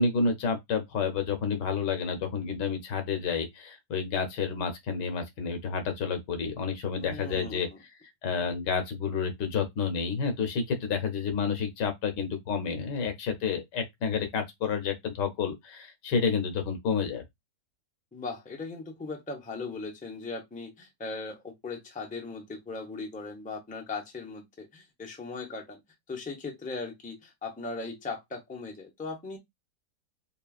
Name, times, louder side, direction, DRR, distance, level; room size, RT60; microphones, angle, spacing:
voice 1, 0.0-7.7 8.2-17.2, left 5 dB, 85° left, 1.6 m, -30 dB
voice 2, 7.0-7.8 18.1-25.8 26.1-29.4, left 3 dB, 10° left, 0.6 m, -38 dB
5.3 x 2.4 x 2.3 m
omnidirectional pair, 1.8 m